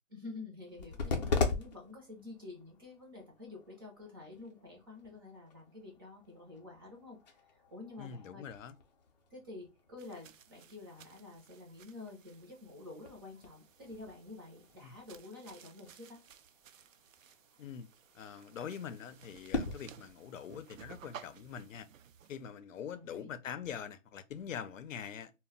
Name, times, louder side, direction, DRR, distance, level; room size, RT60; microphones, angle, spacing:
voice 1, 0.1-7.2 7.5-8.4 9.3-16.2 22.9-23.3, left 3 dB, 20° right, 0.5 m, -49 dB
sound 1, 0.6-19.7, left 4 dB, 35° left, 0.5 m, -42 dB
voice 2, 8.0-8.8 14.8-14.9 17.6-17.9 18.1-21.9 22.3-25.3, left 8 dB, 80° left, 0.6 m, -44 dB
sound 2, 10.0-22.4, right 9 dB, 80° right, 0.5 m, -57 dB
2.1 x 2.1 x 3.7 m
hypercardioid pair, 150°, 39 cm